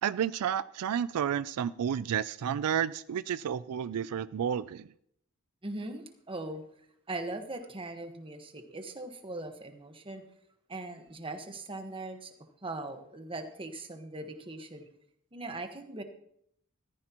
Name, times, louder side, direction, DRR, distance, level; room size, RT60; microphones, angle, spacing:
voice 1, 0.0-4.9, right 8 dB, 80° right, 16 dB, 0.3 m, -31 dB
voice 2, 5.6-6.6 7.1-10.2 10.7-12.3 12.6-14.8 15.3-16.0, right 2 dB, 25° right, 6 dB, 1.3 m, -40 dB
14.5 x 14.0 x 3.0 m, 0.69 s
head